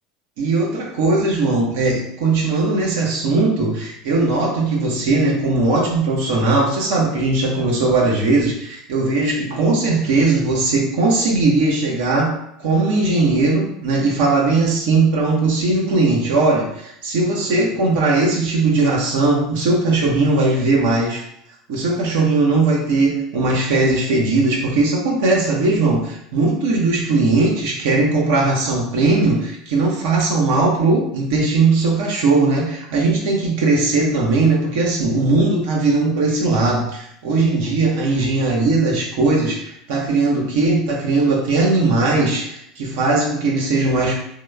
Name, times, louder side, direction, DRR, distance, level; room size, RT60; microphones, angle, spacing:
voice 1, 0.4-21.2 21.7-44.1, right 3 dB, 65° right, -2 dB, 0.6 m, -18 dB
3.0 x 2.0 x 3.2 m, 0.74 s
figure-of-eight pair, 70°, 0 cm